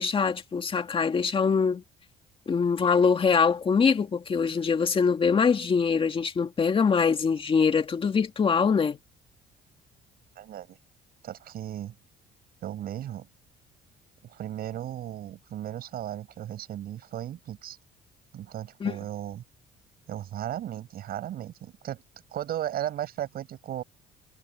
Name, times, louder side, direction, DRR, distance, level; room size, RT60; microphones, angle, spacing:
voice 1, 0.0-1.8 2.5-9.0 18.8-19.0, left 5 dB, 30° left, 2.1 m, -23 dB
voice 2, 10.4-10.8 11.2-11.9 12.6-13.3 14.2-17.8 18.3-19.4 20.1-22.0 22.3-23.8, right 11 dB, 65° right, 7.9 m, -35 dB
cardioid pair, 110°, 17 cm